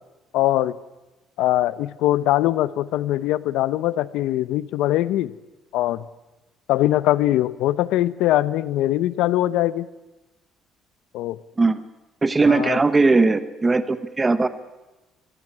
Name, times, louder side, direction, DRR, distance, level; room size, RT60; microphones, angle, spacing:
voice 1, 0.3-0.8 1.4-5.3 5.7-6.0 6.7-9.9 11.1-11.4 12.5-12.8, left 14 dB, 90° left, 18 dB, 0.8 m, -22 dB
voice 2, 12.2-14.5, right 3 dB, 15° right, 13 dB, 1.0 m, -19 dB
23.0 x 15.5 x 9.8 m, 1.1 s
cardioid pair, 145°, 0 cm